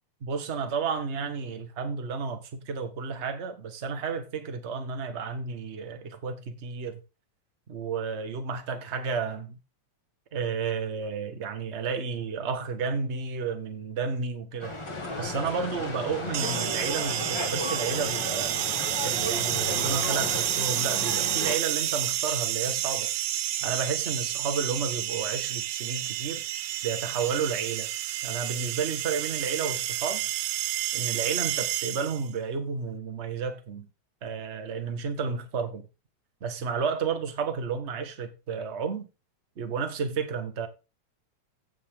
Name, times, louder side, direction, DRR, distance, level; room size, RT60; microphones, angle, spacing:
voice 1, 0.2-7.0 7.7-9.6 10.3-14.8 15.2-18.7 19.0-23.1 23.6-26.4 26.8-27.9 28.2-30.3 30.9-33.9 34.2-35.9 36.4-39.1 39.6-40.7, right 5 dB, 45° right, 0.9 m, -32 dB
sound 1, 14.6-20.5, left 1 dB, 15° left, 1.0 m, -38 dB
sound 2, 14.8-21.6, left 3 dB, 45° left, 1.9 m, -36 dB
sound 3, 16.3-32.3, right 13 dB, 80° right, 1.9 m, -30 dB
15.5 x 5.4 x 3.8 m
omnidirectional pair, 3.3 m